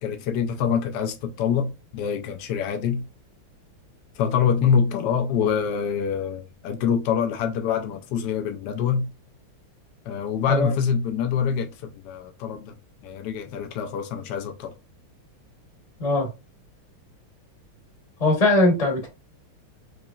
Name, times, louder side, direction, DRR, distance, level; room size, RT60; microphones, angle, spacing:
voice 1, 0.0-3.1 4.2-9.1 10.1-12.7 13.0-14.7, left 7 dB, 90° left, 0.9 m, -25 dB
voice 2, 16.0-16.3 18.2-19.1, left 2 dB, 30° left, 0.7 m, -20 dB
4.7 x 2.9 x 2.3 m
omnidirectional pair, 2.4 m